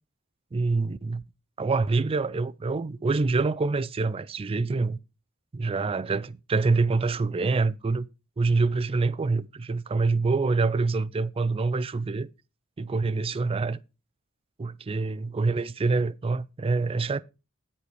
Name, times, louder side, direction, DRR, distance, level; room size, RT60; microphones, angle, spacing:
voice 1, 0.5-1.2 1.6-5.0 5.5-8.1 8.4-12.3 12.8-13.8 14.6-17.2, right 3 dB, 25° right, 0.4 m, -26 dB
8.4 x 7.2 x 4.6 m
head